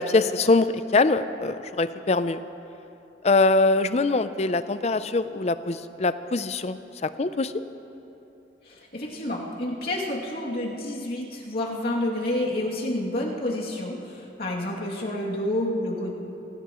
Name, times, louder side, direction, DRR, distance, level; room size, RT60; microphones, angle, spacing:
voice 1, 0.0-2.4 3.2-7.5, left 3 dB, 35° left, 12 dB, 0.5 m, -23 dB
voice 2, 8.7-16.2, left 1 dB, 55° left, -4 dB, 2.6 m, -29 dB
25.0 x 16.0 x 3.1 m, 2.9 s
head